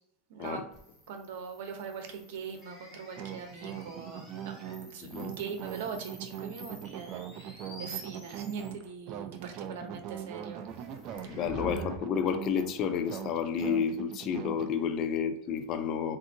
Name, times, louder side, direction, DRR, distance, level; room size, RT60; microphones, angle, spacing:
voice 1, 0.3-0.6 1.1-10.6 11.2-11.4, right 6 dB, 80° right, 0.7 m, -41 dB
sound 1, 0.7-8.9 10.7-12.0, left 1 dB, 15° left, 1.0 m, -48 dB
sound 2, 3.2-14.7, right 9 dB, 45° right, 0.3 m, -41 dB
voice 2, 5.0-5.3 11.3-16.2, left 7 dB, 40° left, 0.4 m, -31 dB
3.4 x 2.7 x 2.6 m
supercardioid pair, 145°, 0 cm